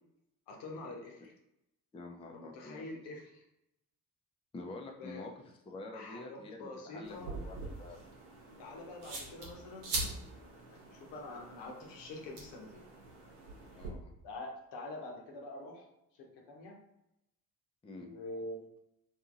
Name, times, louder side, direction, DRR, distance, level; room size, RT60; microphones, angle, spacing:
voice 1, 0.5-1.3 2.3-3.4 5.0-5.3 5.9-7.3 8.6-9.9 10.7-12.8 14.2-15.9 16.2-16.8 17.9-18.6, left 2 dB, 65° left, 0 dB, 0.8 m, -45 dB
voice 2, 1.9-2.9 4.5-5.3 5.7-8.1 13.8-14.1 17.8-18.1, left 2 dB, 15° left, 2 dB, 0.4 m, -47 dB
sound 1, 7.0-13.9, right 2 dB, 75° right, 0.8 m, -43 dB
2.7 x 2.6 x 2.4 m, 0.84 s
hypercardioid pair, 40°, 44 cm